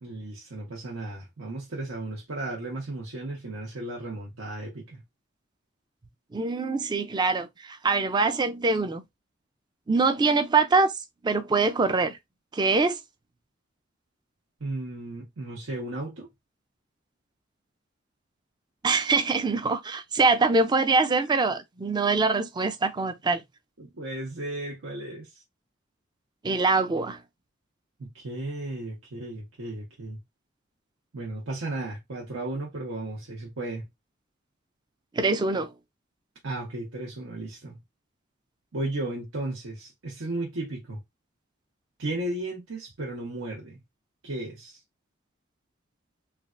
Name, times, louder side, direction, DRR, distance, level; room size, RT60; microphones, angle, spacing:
voice 1, 0.0-5.0 14.6-16.3 23.8-25.4 28.0-30.2 31.1-33.9 36.4-37.8 38.7-41.0 42.0-43.8 44.2-44.8, right 2 dB, 80° right, 0.9 m, -35 dB
voice 2, 6.3-9.0 9.9-10.9 11.2-12.2 12.5-13.0 18.8-23.4 26.4-27.2 35.1-35.7, right 3 dB, 20° right, 0.3 m, -24 dB
3.3 x 2.3 x 2.4 m
head